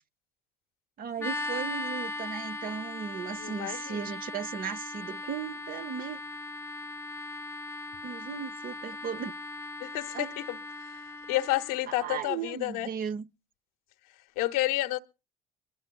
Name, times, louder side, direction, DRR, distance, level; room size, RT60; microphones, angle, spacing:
voice 1, 1.0-6.2 8.0-9.3 10.1-10.3 11.9-13.3, right 7 dB, 50° right, 0.8 m, -36 dB
sound 1, 1.2-11.8, left 2 dB, 15° left, 0.7 m, -38 dB
voice 2, 3.4-4.2 9.8-12.9 14.4-15.0, left 16 dB, 80° left, 1.1 m, -31 dB
24.0 x 12.5 x 2.3 m
hypercardioid pair, 60°, 19 cm